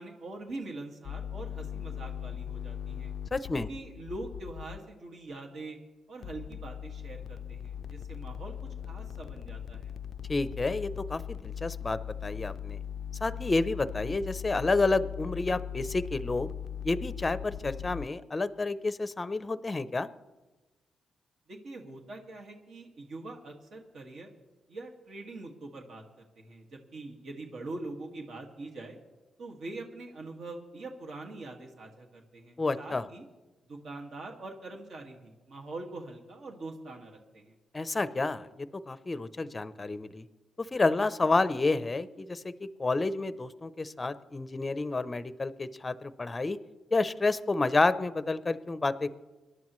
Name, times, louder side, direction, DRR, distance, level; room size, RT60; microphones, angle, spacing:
voice 1, 0.0-3.1 3.5-5.8 6.1-8.6 8.9-9.9 21.5-24.3 24.7-29.0 29.4-33.2 33.7-37.5, right 2 dB, 65° right, 1 dB, 1.9 m, -43 dB
sound 1, 1.0-4.8 6.2-18.1, left 9 dB, 70° left, 0.3 m, -39 dB
voice 2, 3.3-3.7 10.3-12.8 13.2-16.5 16.8-20.1 32.6-33.0 37.7-38.5 38.9-40.2 40.7-42.5 42.8-46.6 46.9-49.1, left 3 dB, 25° left, 14 dB, 0.6 m, -29 dB
26.0 x 11.0 x 3.1 m, 1.2 s
cardioid pair, 120°, 0 cm